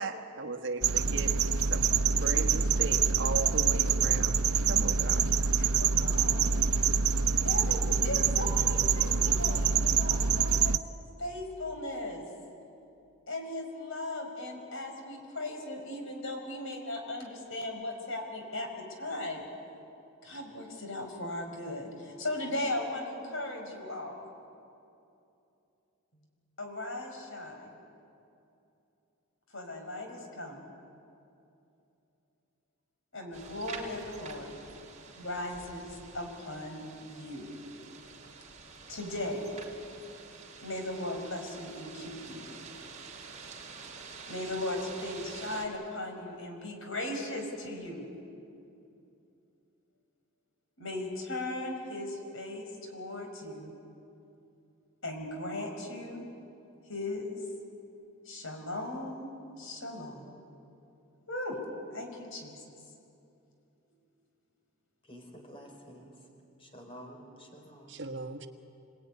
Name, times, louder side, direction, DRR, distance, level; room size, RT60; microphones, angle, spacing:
voice 1, 0.0-1.4 1.7-4.4 4.7-5.3 67.9-68.5, right 3 dB, 55° right, 5 dB, 1.4 m, -37 dB
sound 1, 0.8-10.8, right 6 dB, 80° right, 0.8 m, -26 dB
voice 2, 5.6-6.7 7.4-10.8 11.2-12.2 13.3-19.4 20.2-24.3 26.6-27.7 29.5-30.7 33.1-34.6 35.2-37.5 38.9-39.4 40.6-42.5 44.3-48.1 50.8-53.7 55.0-56.3 56.9-57.4 58.3-59.3 59.6-60.4 61.3-61.6 61.9-62.5, left 1 dB, 65° left, 3 dB, 5.2 m, -37 dB
sound 2, 33.3-45.7, right 4 dB, 30° right, 3.9 m, -48 dB
voice 3, 65.0-66.1 66.6-68.0, equal, 25° left, 2 dB, 4.5 m, -49 dB
27.5 x 19.5 x 9.8 m, 2.7 s
head